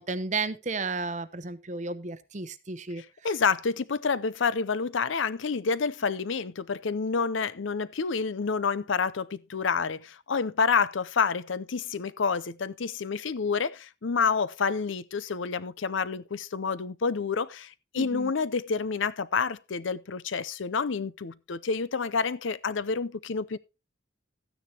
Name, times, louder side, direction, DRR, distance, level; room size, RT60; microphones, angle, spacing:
voice 1, 0.0-3.0 18.0-18.3, right 3 dB, 35° right, 0.8 m, -33 dB
voice 2, 3.0-23.6, left 5 dB, 75° left, 0.6 m, -28 dB
13.5 x 9.7 x 2.9 m
head